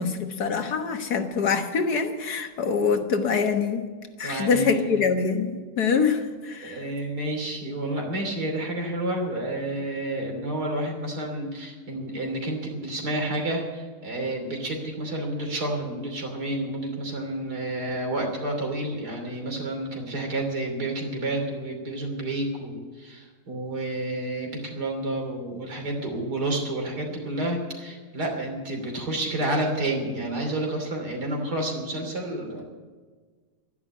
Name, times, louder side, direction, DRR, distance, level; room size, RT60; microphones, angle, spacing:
voice 1, 0.0-3.9 4.2-6.8, left 5 dB, 75° left, 6 dB, 1.8 m, -25 dB
voice 2, 4.2-5.0 6.6-32.6, right 1 dB, 85° right, 2 dB, 3.6 m, -30 dB
12.5 x 11.0 x 8.3 m, 1.5 s
omnidirectional pair, 1.7 m